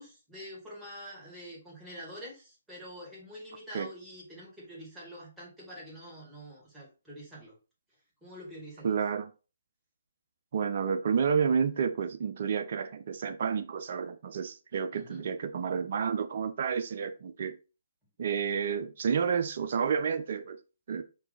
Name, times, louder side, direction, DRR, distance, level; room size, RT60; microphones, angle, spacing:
voice 1, 0.0-7.6 8.2-8.9 14.9-15.3, equal, 5° right, 2.1 m, -46 dB
voice 2, 8.8-9.3 10.5-17.5 18.2-20.6 20.9-21.0, right 6 dB, 50° right, 0.6 m, -30 dB
4.6 x 2.8 x 4.1 m
figure-of-eight pair, 135°, 0 cm